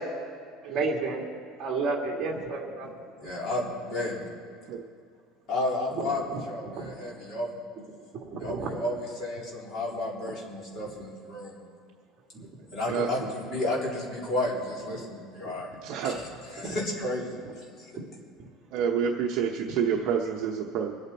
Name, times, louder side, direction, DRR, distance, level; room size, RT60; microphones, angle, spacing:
voice 1, 0.6-1.2 1.6-2.9 6.0-6.4 6.8-7.0 8.3-8.7 12.3-12.5 15.4-15.5, right 3 dB, 30° right, -1 dB, 2.3 m, -31 dB
voice 2, 3.2-4.2 5.5-7.6 8.4-11.6 12.7-15.7 16.0-16.2 16.5-17.3 17.6-17.9, left 1 dB, 35° left, -4 dB, 3.3 m, -32 dB
voice 3, 15.8-16.2 18.7-21.0, right 7 dB, 45° right, 1 dB, 0.9 m, -28 dB
24.5 x 8.8 x 4.3 m, 2.3 s
cardioid pair, 175°, 0 cm